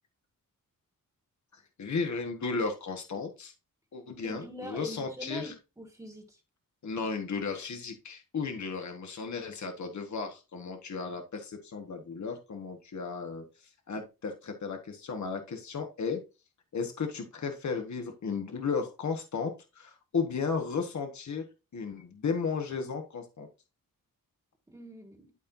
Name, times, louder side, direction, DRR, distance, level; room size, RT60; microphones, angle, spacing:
voice 1, 1.5-3.5 3.9-5.5 6.8-13.4 13.9-16.2 16.7-21.4 21.7-23.5, left 5 dB, 55° left, 1.5 m, -34 dB
voice 2, 4.2-6.4 24.7-25.3, equal, 10° right, 1.7 m, -43 dB
12.5 x 4.4 x 2.7 m
wide cardioid pair, 120°, 34 cm